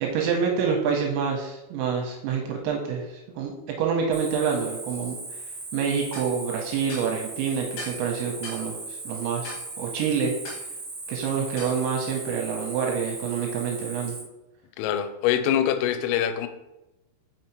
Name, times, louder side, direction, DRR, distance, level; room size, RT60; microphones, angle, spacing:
voice 1, 0.0-5.2 5.7-9.5 9.8-10.3 11.1-14.2, right 6 dB, 85° right, 1 dB, 2.8 m, -27 dB
Cricket, 4.1-14.2, right 3 dB, 65° right, 1.4 m, -38 dB
sound 1, 6.1-6.3 6.9-7.1 7.8-8.0 8.4-8.6 9.4-9.7 10.5-10.7 11.6-11.8, left 2 dB, 70° left, 3.9 m, -38 dB
voice 2, 14.8-16.5, left 10 dB, 90° left, 9 dB, 3.2 m, -24 dB
6.6 x 5.5 x 3.0 m, 0.97 s
omnidirectional pair, 5.6 m